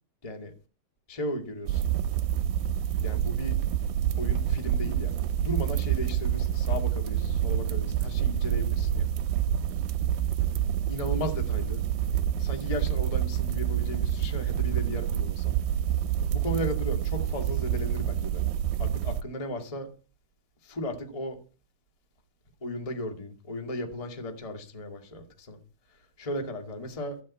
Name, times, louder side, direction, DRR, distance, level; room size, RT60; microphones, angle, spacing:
voice 1, 0.2-0.5 1.1-1.8 3.0-3.6 4.2-5.1 5.4-9.1 10.9-11.8 12.4-15.6 16.3-18.4 18.8-19.9 20.6-21.4 22.6-25.6 26.2-27.2, left 1 dB, 20° left, 0.9 m, -35 dB
sound 1, 1.7-19.2, right 10 dB, 80° right, 2.4 m, -27 dB
14.5 x 5.5 x 8.5 m
omnidirectional pair, 4.3 m